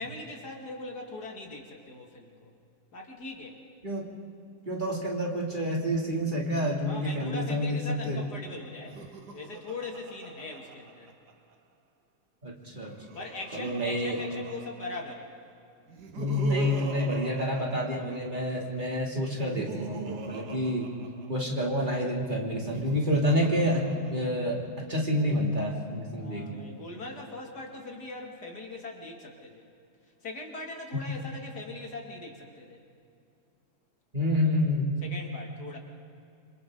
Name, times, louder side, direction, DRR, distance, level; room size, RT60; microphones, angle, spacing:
voice 1, 0.0-2.5 2.9-3.6 6.8-9.0 9.3-11.1 13.1-15.3 26.2-29.6 30.2-32.8 35.0-35.8, left 2 dB, 85° left, 0 dB, 3.1 m, -41 dB
voice 2, 4.7-8.2 12.4-13.0 13.5-14.2 16.2-20.9 21.3-23.8 24.1-24.6 24.9-26.6 30.9-31.0 34.1-35.0, equal, 30° right, -2 dB, 3.2 m, -28 dB
Laughter, 8.8-11.5 12.6-15.2 15.9-18.6 19.2-21.7 22.5-24.7, right 3 dB, 90° right, 1.8 m, -42 dB
27.5 x 26.5 x 4.0 m, 2.5 s
omnidirectional pair, 1.7 m